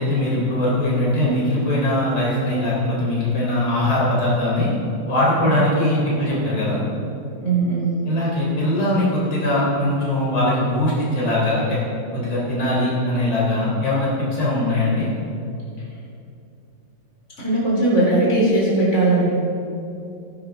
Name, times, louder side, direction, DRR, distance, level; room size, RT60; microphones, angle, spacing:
voice 1, 0.0-4.7 5.1-6.8 8.1-11.8 12.1-15.1, left 1 dB, 75° left, -7 dB, 4.3 m, -21 dB
voice 2, 7.4-8.0 17.4-19.3, right 2 dB, 35° left, -7 dB, 4.2 m, -19 dB
18.5 x 11.0 x 3.8 m, 2.6 s
omnidirectional pair, 2.3 m